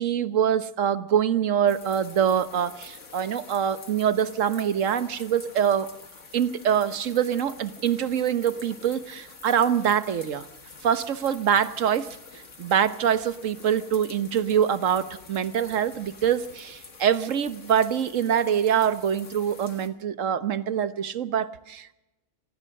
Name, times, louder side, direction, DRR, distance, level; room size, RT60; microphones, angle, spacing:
voice 1, 0.0-5.9 6.3-10.5 10.8-21.9, right 8 dB, 60° right, 13 dB, 1.3 m, -24 dB
sound 1, 1.7-19.9, left 4 dB, 55° left, 2.4 m, -47 dB
26.5 x 18.5 x 6.6 m, 0.96 s
omnidirectional pair, 1.6 m